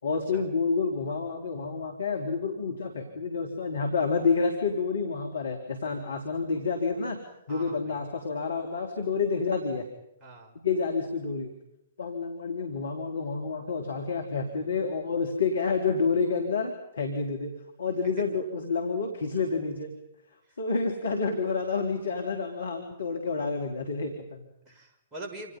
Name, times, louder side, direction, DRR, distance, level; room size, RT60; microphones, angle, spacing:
voice 1, 0.0-7.2 7.5-9.9 10.6-11.5 12.0-17.5 17.8-19.9 20.6-24.5, left 4 dB, 70° left, 4 dB, 3.7 m, -29 dB
voice 2, 6.0-6.3 7.5-8.0 10.2-10.5 24.6-25.6, right 2 dB, 20° right, 1 dB, 6.6 m, -44 dB
28.0 x 28.0 x 5.6 m, 0.82 s
figure-of-eight pair, 120°, 0 cm